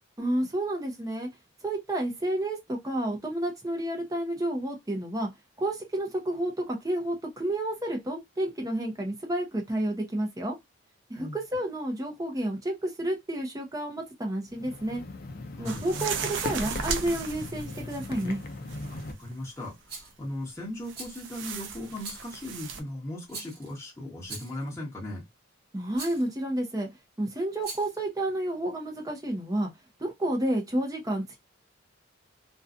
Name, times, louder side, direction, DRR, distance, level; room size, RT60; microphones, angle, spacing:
voice 1, 0.2-1.3 1.6-5.3 5.6-10.5 11.1-15.0 15.6-18.4 25.7-26.9 27.2-29.7 30.0-31.4, right 1 dB, 15° right, 0.6 m, -30 dB
sound 1, 14.5-19.1, left 2 dB, 50° left, 0.4 m, -39 dB
sound 2, 15.7-18.4 18.7-19.3 20.9-22.8, right 5 dB, 60° right, 0.4 m, -36 dB
voice 2, 18.9-25.3, left 1 dB, 15° left, 1.1 m, -38 dB
Rattle, 19.9-20.2 20.9-21.4 22.0-22.4 23.3-23.7 24.2-24.7 25.9-26.3 27.5-28.0, right 3 dB, 45° right, 0.9 m, -41 dB
2.6 x 2.3 x 2.4 m
head